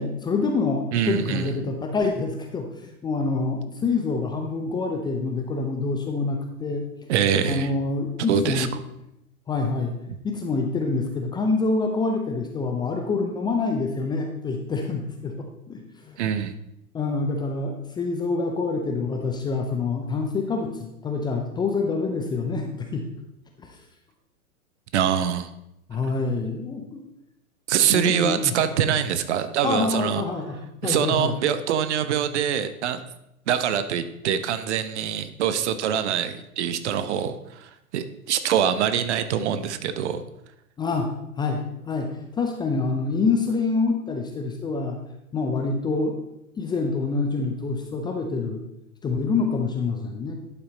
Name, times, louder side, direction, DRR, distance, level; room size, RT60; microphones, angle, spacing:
voice 1, 0.0-6.8 7.4-8.7 9.5-9.9 10.2-16.2 16.9-23.0 23.6-23.8 25.9-27.0 27.9-28.5 28.9-29.0 29.6-31.4 40.8-41.1 41.4-41.6 41.9-45.0 45.3-46.1 46.6-48.6 49.0-50.3, left 3 dB, 10° left, 3 dB, 0.6 m, -26 dB
voice 2, 0.9-1.5 7.1-7.7 8.3-8.7 16.2-16.5 24.9-25.5 27.7-30.2 30.8-33.0 33.5-40.2, right 9 dB, 50° right, 11 dB, 0.9 m, -24 dB
11.0 x 5.7 x 4.2 m, 0.84 s
figure-of-eight pair, 110°, 44 cm